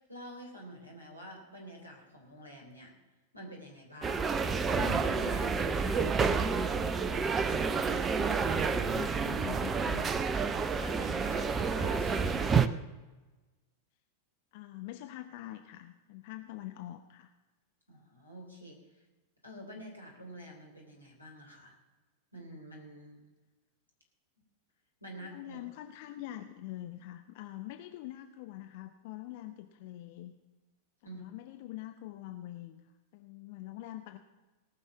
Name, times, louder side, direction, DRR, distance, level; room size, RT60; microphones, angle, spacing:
voice 1, 0.1-2.9 3.3-4.3 4.7-6.8 10.7-12.5 17.9-18.8 19.4-21.8 22.3-23.2 25.0-25.6 31.0-31.3, left 1 dB, 90° left, -2 dB, 3.6 m, -47 dB
sound 1, 4.0-12.7, right 5 dB, 20° right, 0.7 m, -29 dB
voice 2, 8.2-10.4 14.5-17.3 25.2-30.4 31.1-34.2, left 14 dB, 50° left, 7 dB, 0.7 m, -45 dB
18.5 x 6.2 x 7.2 m, 1.2 s
figure-of-eight pair, 90°, 0 cm